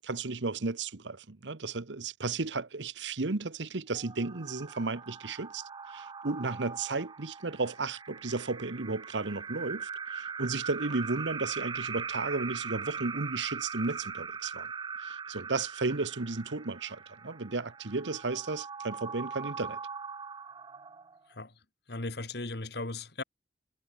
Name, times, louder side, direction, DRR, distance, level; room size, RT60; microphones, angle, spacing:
voice 1, 0.0-5.6 5.9-14.7 15.0-19.8, right 3 dB, 80° right, 1.1 m, -34 dB
sound 1, 3.9-21.3, right 6 dB, 25° right, 0.4 m, -41 dB
voice 2, 21.9-23.2, left 2 dB, 60° left, 2.0 m, -37 dB
head